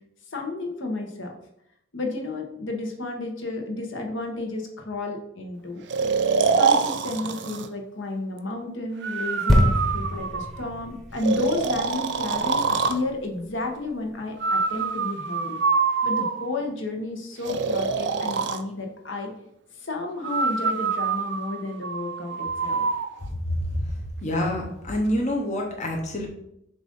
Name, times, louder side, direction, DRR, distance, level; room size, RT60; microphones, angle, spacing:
voice 1, 0.3-1.3 1.9-5.8 6.6-15.6 16.0-19.3 19.8-22.8, left 2 dB, 65° left, 2 dB, 1.1 m, -32 dB
Breathing, 5.9-7.7 9.0-10.7 11.2-13.0 14.4-16.7 17.4-18.6 20.2-23.1, right 5 dB, 60° right, 0.5 m, -25 dB
sound 1, 9.5-13.1 13.7-13.8, equal, ahead, 0.9 m, -25 dB
voice 2, 24.2-26.3, left 1 dB, 35° left, 0 dB, 0.9 m, -26 dB
7.2 x 2.6 x 5.2 m, 0.76 s
head